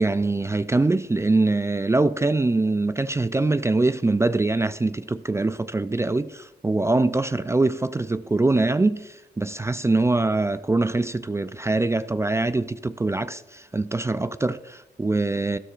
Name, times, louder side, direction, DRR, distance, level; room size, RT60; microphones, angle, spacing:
voice 1, 0.0-15.6, right 2 dB, 15° right, 0.3 m, -23 dB
13.0 x 12.5 x 2.4 m
cardioid pair, 70°, 17 cm